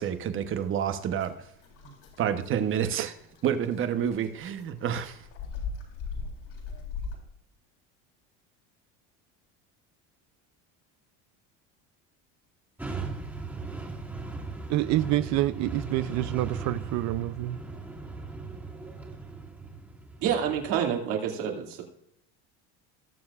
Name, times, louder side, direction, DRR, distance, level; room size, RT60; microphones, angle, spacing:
voice 1, 0.0-1.3 1.8-3.1 3.4-5.2, right 8 dB, 40° right, 1.0 m, -29 dB
sound 1, 0.9-7.2, left 5 dB, 65° left, 3.8 m, -40 dB
sound 2, 12.8-20.8, right 3 dB, 5° right, 2.0 m, -38 dB
voice 2, 14.7-17.6, right 15 dB, 55° right, 0.5 m, -27 dB
voice 3, 20.2-21.8, right 8 dB, 70° right, 2.5 m, -28 dB
19.5 x 7.0 x 2.5 m
cardioid pair, 145°, 34 cm